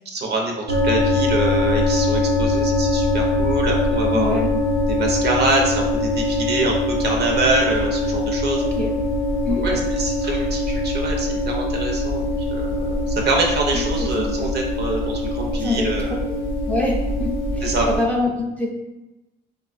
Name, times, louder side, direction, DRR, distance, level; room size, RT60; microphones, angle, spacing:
voice 1, 0.1-4.4 4.9-8.6 9.6-16.2 17.6-17.9, right 2 dB, 55° right, 1 dB, 0.7 m, -25 dB
sound 1, 0.7-18.0, left 1 dB, 85° right, 0.9 m, -22 dB
voice 2, 4.1-4.5 8.6-8.9 9.5-9.7 13.7-14.5 15.6-15.9 16.6-18.7, left 2 dB, 5° left, -1 dB, 0.4 m, -25 dB
3.6 x 2.2 x 2.4 m, 0.99 s
cardioid pair, 90°, 20 cm